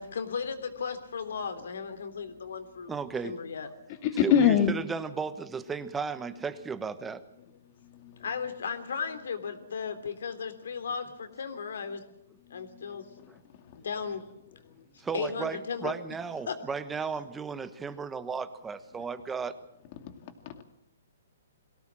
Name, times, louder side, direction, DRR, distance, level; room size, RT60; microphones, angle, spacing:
voice 1, 0.0-2.9 3.2-3.7 8.2-12.0 12.5-13.0 13.7-14.2 15.1-15.9 16.5-16.6, left 6 dB, 75° left, 8 dB, 3.3 m, -35 dB
voice 2, 2.9-3.3 4.2-7.2 13.3-13.4 15.0-19.6, right 5 dB, 10° right, 12 dB, 1.1 m, -35 dB
voice 3, 4.0-4.8 7.8-8.2 12.5-13.4 20.0-20.6, left 8 dB, 40° left, 7 dB, 2.5 m, -26 dB
23.0 x 17.5 x 7.5 m, 0.79 s
hypercardioid pair, 155°, 0 cm